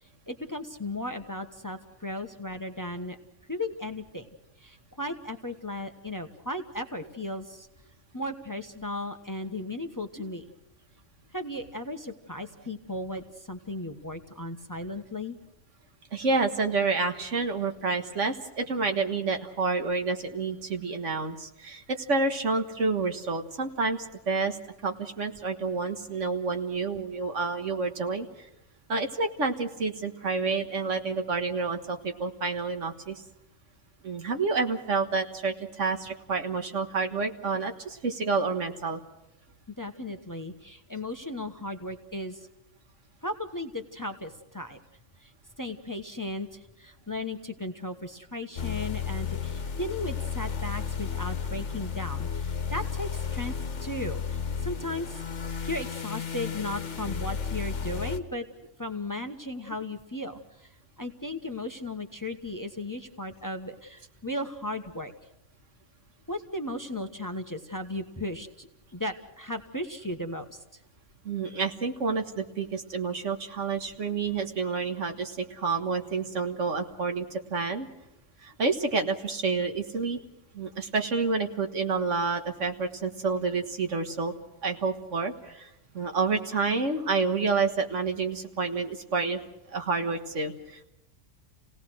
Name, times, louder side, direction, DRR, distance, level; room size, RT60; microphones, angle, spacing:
voice 1, 0.3-3.2 3.5-4.3 4.6-7.7 8.1-10.5 11.3-15.4 39.8-42.5 43.2-44.8 45.2-45.3 45.6-53.5 53.8-55.2 55.6-58.4 58.8-60.7 61.0-65.1 66.3-70.6, left 1 dB, 15° left, 6 dB, 1.1 m, -36 dB
voice 2, 16.1-24.6 24.8-28.5 28.9-33.2 34.0-39.0 71.3-77.9 78.4-80.2 80.5-84.3 84.6-89.4 89.7-90.8, right 4 dB, 70° right, 5 dB, 1.8 m, -29 dB
sound 1, 48.6-58.2, left 7 dB, 65° left, 1.5 m, -33 dB
28.5 x 17.5 x 6.3 m, 0.90 s
omnidirectional pair, 1.3 m